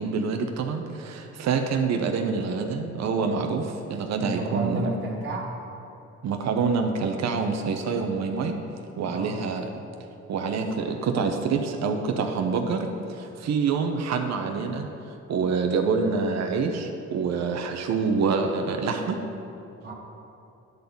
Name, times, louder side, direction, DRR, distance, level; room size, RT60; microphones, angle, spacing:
voice 1, 0.0-4.9 6.2-8.6 9.0-9.8 10.3-14.9 15.3-19.2, right 5 dB, 60° right, 4 dB, 0.8 m, -26 dB
voice 2, 4.2-5.5 9.0-9.4 19.8-19.9, right 1 dB, 40° right, -4 dB, 1.6 m, -31 dB
10.5 x 4.0 x 7.0 m, 2.8 s
cardioid pair, 90°, 30 cm